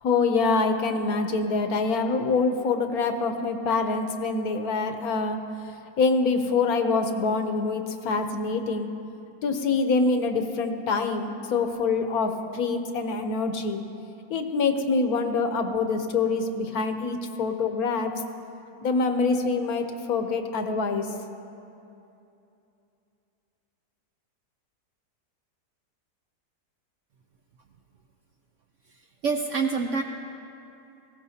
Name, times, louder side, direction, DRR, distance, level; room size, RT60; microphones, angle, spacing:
voice 1, 0.0-5.4 6.0-8.9 9.4-13.8 14.3-18.1 18.8-21.1, left 4 dB, 65° left, 6 dB, 1.2 m, -25 dB
voice 2, 29.2-30.0, right 4 dB, 70° right, 4 dB, 0.7 m, -25 dB
19.0 x 16.0 x 2.8 m, 2.8 s
omnidirectional pair, 1.8 m